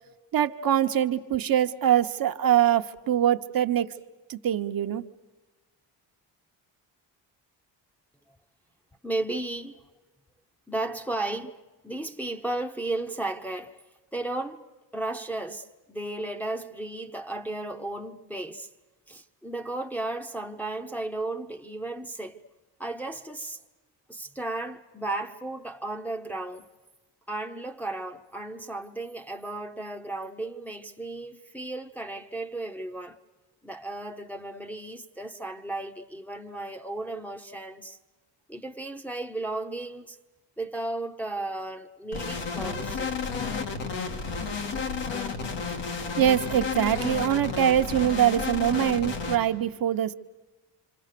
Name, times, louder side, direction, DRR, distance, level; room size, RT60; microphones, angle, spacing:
voice 1, 0.3-3.9 4.3-5.0 46.2-50.1, right 10 dB, 55° right, 0.9 m, -23 dB
voice 2, 9.0-9.8 10.7-11.6 11.8-13.8 14.1-14.6 14.9-18.7 19.1-22.4 22.8-23.6 24.1-26.7 27.3-33.2 33.6-38.0 38.5-40.2 40.6-43.2, right 2 dB, 5° left, 0.8 m, -34 dB
sound 1, 42.1-49.4, left 5 dB, 80° left, 2.6 m, -31 dB
27.0 x 26.5 x 6.7 m
cardioid pair, 125°, 43 cm